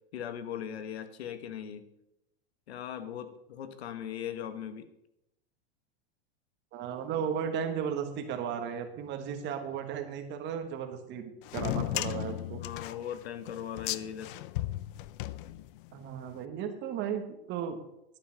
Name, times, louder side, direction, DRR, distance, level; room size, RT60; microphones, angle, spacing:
voice 1, 0.1-1.9 2.7-4.9 12.5-14.3, left 9 dB, 85° left, 11 dB, 1.3 m, -39 dB
voice 2, 6.7-12.6 15.9-17.8, right 8 dB, 35° right, 7 dB, 1.6 m, -35 dB
sound 1, 11.4-16.0, left 16 dB, 55° left, 0.5 m, -35 dB
11.0 x 7.4 x 5.7 m, 0.84 s
supercardioid pair, 140°, 31 cm